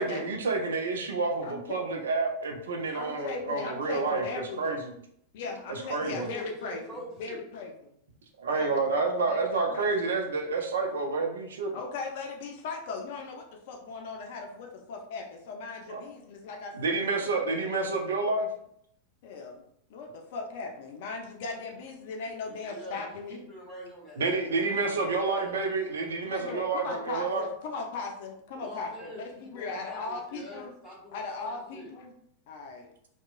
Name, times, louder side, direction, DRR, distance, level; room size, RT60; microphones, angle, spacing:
voice 1, 0.0-4.9 5.7-6.3 8.4-11.8 15.9-16.0 16.7-18.5 24.2-27.4, right 3 dB, 65° right, 2 dB, 0.4 m, -29 dB
voice 2, 1.4-1.8 2.9-4.8 5.3-6.8 7.2-7.9 8.5-9.9 11.7-17.3 19.2-19.6 19.9-23.4 26.3-30.7 31.1-32.1 32.5-32.9, left 4 dB, 50° left, 2 dB, 0.4 m, -38 dB
voice 3, 5.4-7.4 22.4-24.8 25.1-25.5 28.5-31.5 31.7-31.9, equal, ahead, -9 dB, 1.5 m, -44 dB
2.8 x 2.1 x 2.4 m, 0.70 s
figure-of-eight pair, 90°, 0 cm